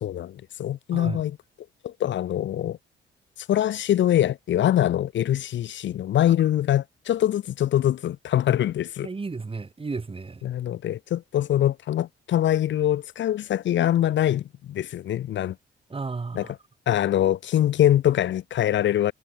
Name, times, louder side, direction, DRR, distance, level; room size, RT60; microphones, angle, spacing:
voice 1, 0.0-1.3 1.8-2.8 3.5-9.1 10.4-15.5 16.3-16.5 16.9-19.1, left 11 dB, 70° left, 1.4 m, -23 dB
voice 2, 0.9-1.2 6.4-6.5 9.0-10.5 15.9-16.5, right 4 dB, 25° right, 7.5 m, -33 dB
cardioid pair, 90°, 20 cm